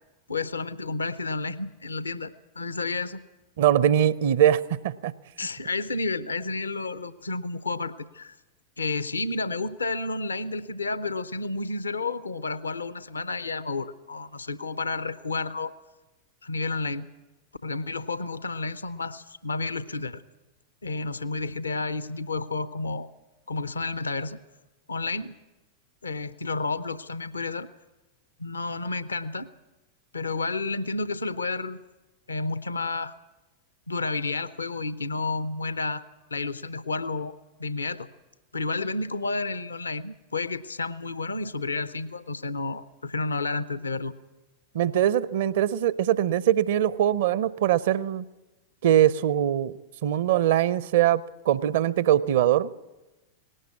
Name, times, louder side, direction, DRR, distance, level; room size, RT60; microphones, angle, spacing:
voice 1, 0.3-3.2 5.4-8.3 8.8-15.7 16.4-17.1 17.6-20.2 20.8-23.1 23.5-24.4 24.9-25.3 26.0-27.7 28.4-29.5 30.1-31.8 32.3-33.1 33.9-36.0 36.3-37.3 37.6-38.1 38.5-44.1, left 3 dB, 75° left, 15 dB, 0.7 m, -31 dB
voice 2, 3.6-5.1 44.7-48.2 48.8-49.7 50.0-52.7, right 11 dB, 55° right, 18 dB, 0.7 m, -22 dB
19.0 x 17.5 x 8.5 m, 1.1 s
figure-of-eight pair, 90°, 0 cm